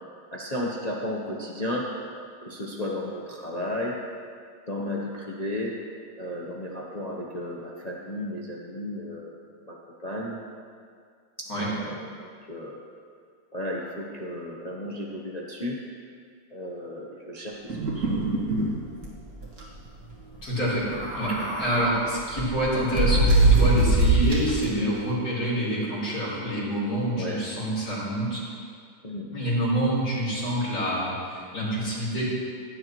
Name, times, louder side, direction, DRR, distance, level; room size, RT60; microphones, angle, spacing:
voice 1, 0.3-1.9 2.4-3.9 4.7-5.7 6.1-10.4 11.4-12.8 13.5-15.8 16.5-17.6 17.9-18.2 21.3-21.4 24.7-24.9 27.1-27.4 29.0-29.3, left 1 dB, 35° left, -3 dB, 0.7 m, -34 dB
sound 1, 17.7-18.7 19.0-19.1 19.4-19.6 20.8-21.9 22.4-24.6, right 2 dB, 55° right, 2.4 m, -22 dB
voice 2, 20.4-20.9 21.2-28.4 29.3-32.2, equal, 50° left, -10 dB, 4.0 m, -27 dB
16.0 x 9.6 x 3.0 m, 2.1 s
omnidirectional pair, 2.0 m